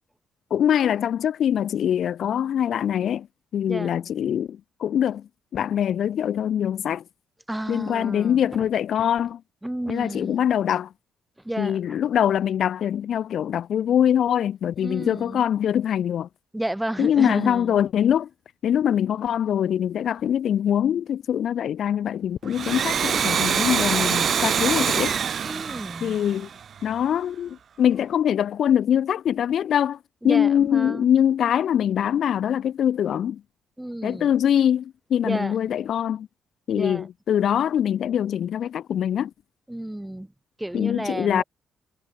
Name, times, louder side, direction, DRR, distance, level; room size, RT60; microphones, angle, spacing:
voice 1, 0.5-3.3 3.5-5.2 5.5-7.0 7.7-9.4 9.9-10.9 11.6-16.3 17.0-18.3 18.6-25.2 26.0-26.5 26.8-30.0 30.2-33.4 34.0-36.3 36.7-39.3 40.7-41.4, left 9 dB, 65° left, 0.9 m, -23 dB
voice 2, 3.7-4.2 7.5-8.7 9.6-10.4 11.4-12.0 14.8-15.4 16.5-17.8 25.4-26.2 30.2-31.1 33.8-34.4 35.2-35.6 36.7-37.1 39.7-40.3 40.6-41.4, right 1 dB, 5° right, 5.7 m, -32 dB
Domestic sounds home sounds, 22.4-26.9, right 7 dB, 55° right, 2.6 m, -24 dB
cardioid pair, 90°, 0 cm